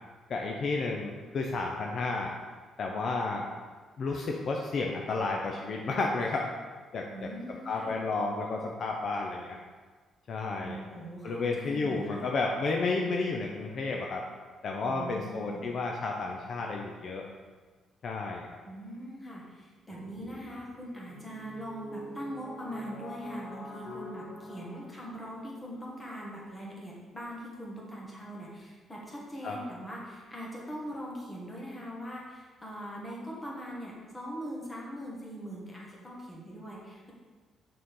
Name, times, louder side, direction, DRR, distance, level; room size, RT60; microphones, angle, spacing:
voice 1, 0.3-2.3 2.8-3.5 4.0-6.5 6.9-7.3 7.7-9.6 10.3-10.9 11.2-14.2 14.6-17.2 18.0-18.6 29.4-29.6, left 3 dB, 55° left, 0 dB, 0.6 m, -32 dB
voice 2, 7.1-7.9 10.6-12.3 14.9-15.8 18.6-37.1, equal, 20° left, -4 dB, 1.7 m, -41 dB
sound 1, 19.9-24.9, left 1 dB, 35° left, 1.1 m, -45 dB
6.5 x 4.3 x 3.8 m, 1.4 s
cardioid pair, 90°, 0 cm